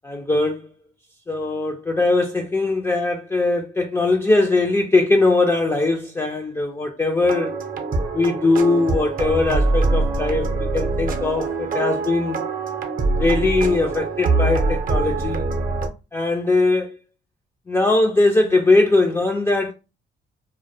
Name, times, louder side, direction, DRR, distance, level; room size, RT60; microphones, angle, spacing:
voice 1, 0.1-0.7 1.3-7.5 8.1-12.4 13.2-15.4 16.1-17.0 17.7-19.7, left 2 dB, 15° left, 0.4 m, -20 dB
sound 1, 7.2-15.9, right 3 dB, 45° right, 0.6 m, -23 dB
2.2 x 2.1 x 2.6 m
cardioid pair, 90°, 20 cm